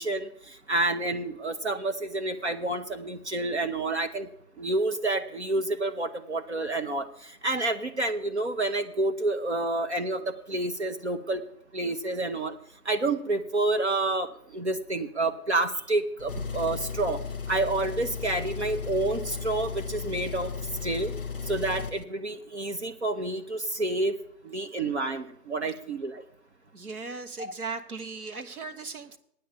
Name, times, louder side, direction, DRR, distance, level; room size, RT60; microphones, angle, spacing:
voice 1, 0.0-4.3 4.6-11.4 11.7-12.5 12.8-14.3 14.5-17.2 17.5-20.5 20.8-21.1 21.5-24.1 24.4-26.2, right 2 dB, 45° right, 6 dB, 0.9 m, -29 dB
Engine, 16.2-22.0, left 5 dB, 35° left, 0.8 m, -35 dB
voice 2, 26.7-29.2, right 4 dB, 65° right, 9 dB, 1.5 m, -37 dB
9.2 x 7.0 x 8.5 m, 0.71 s
figure-of-eight pair, 160°, 47 cm